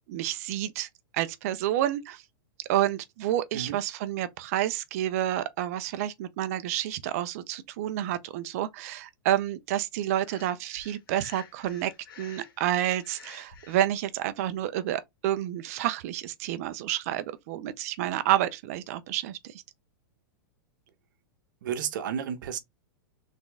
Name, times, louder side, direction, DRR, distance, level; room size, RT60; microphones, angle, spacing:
voice 1, 0.1-2.2 2.7-11.9 12.2-19.6, right 12 dB, 40° right, 0.6 m, -29 dB
Breathing, 10.2-13.9, left 6 dB, 70° left, 1.5 m, -50 dB
voice 2, 21.6-22.6, right 8 dB, 60° right, 1.0 m, -32 dB
4.2 x 3.6 x 3.4 m
supercardioid pair, 165°, 12 cm